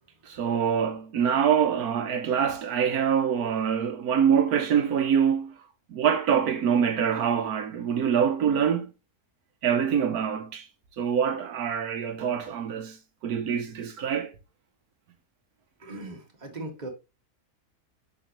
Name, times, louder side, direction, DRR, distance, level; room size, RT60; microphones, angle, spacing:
voice 1, 0.2-5.5 5.9-8.9 9.6-10.7 11.0-13.0 13.2-14.3, right 8 dB, 80° right, 1.3 m, -25 dB
voice 2, 15.8-16.9, right 2 dB, 30° right, 1.9 m, -38 dB
7.9 x 6.3 x 3.0 m
omnidirectional pair, 1.6 m